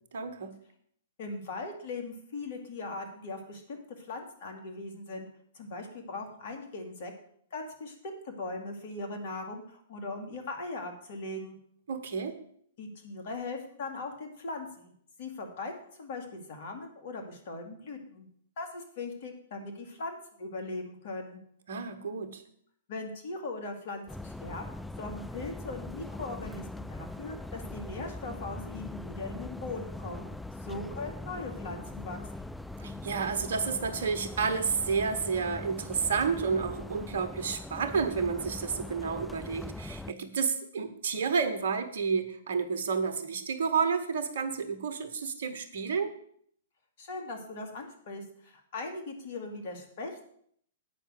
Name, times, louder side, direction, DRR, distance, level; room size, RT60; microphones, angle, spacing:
voice 1, 0.1-0.5 11.9-12.4 21.7-22.4 32.8-46.1, right 5 dB, 65° right, 10 dB, 1.2 m, -30 dB
voice 2, 1.2-5.3 5.5-7.1 7.5-11.6 12.8-14.9 15.2-15.7 16.0-18.3 18.6-21.4 22.9-24.6 25.0-30.3 30.6-32.5 47.0-50.3, left 3 dB, 55° left, 4 dB, 2.3 m, -39 dB
sound 1, 24.1-40.1, left 2 dB, 5° left, 0.3 m, -41 dB
8.6 x 5.8 x 7.7 m, 0.65 s
figure-of-eight pair, 115°, 0 cm